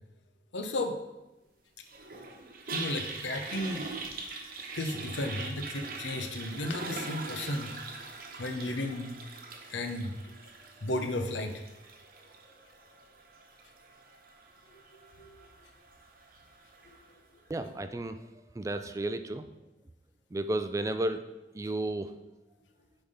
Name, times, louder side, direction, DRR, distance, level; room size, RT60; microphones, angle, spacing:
voice 1, 0.5-1.0 2.7-3.9 4.7-7.8 8.4-9.2 9.7-10.1 10.8-11.6 15.2-15.4 16.8-17.0, left 1 dB, 90° left, 6 dB, 0.8 m, -34 dB
Toilet flush, 1.9-17.1, right 3 dB, 50° right, 0.9 m, -43 dB
voice 2, 17.5-18.2 18.5-19.5 20.3-21.2 21.5-22.1, right 2 dB, 20° right, 10 dB, 0.3 m, -32 dB
8.7 x 3.5 x 5.5 m, 1.0 s
head